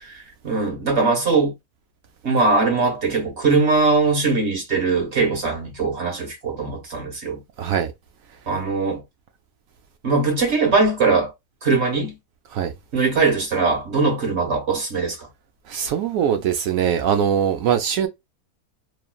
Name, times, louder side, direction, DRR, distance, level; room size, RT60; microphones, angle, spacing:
voice 1, 0.0-1.5 2.2-7.4 8.5-9.0 10.0-11.3 11.6-12.2 12.9-15.3, right 4 dB, 45° right, 1.4 m, -21 dB
voice 2, 7.6-7.9 12.5-12.7 15.7-18.1, right 8 dB, 70° right, 0.9 m, -21 dB
3.1 x 2.3 x 2.3 m
omnidirectional pair, 1.6 m